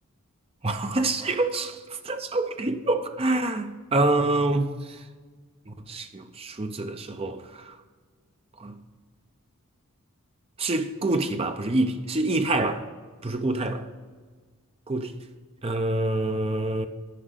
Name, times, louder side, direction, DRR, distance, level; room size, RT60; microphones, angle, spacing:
voice 1, 0.6-4.7 5.7-7.7 8.6-8.8 10.6-12.8 13.2-13.8 14.9-15.1 15.6-16.9, right 2 dB, 25° right, 0.6 m, -26 dB
10.0 x 5.2 x 8.0 m
head